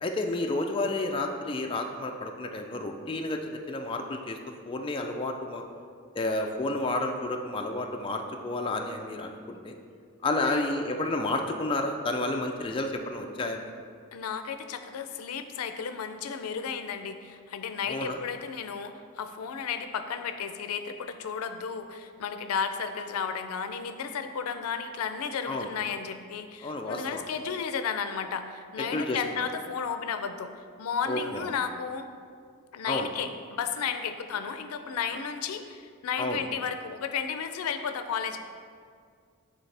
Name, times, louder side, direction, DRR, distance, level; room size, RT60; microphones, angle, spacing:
voice 1, 0.0-4.4 4.6-5.6 6.2-9.7 10.2-13.7 17.9-18.2 25.5-25.7 26.6-27.2 28.8-29.5 31.1-31.5 32.9-33.1 36.2-36.4, left 2 dB, 25° left, 3 dB, 0.3 m, -31 dB
voice 2, 14.1-32.1 32.7-38.4, left 6 dB, 90° left, 8 dB, 0.4 m, -33 dB
9.0 x 3.5 x 3.3 m, 2.1 s
head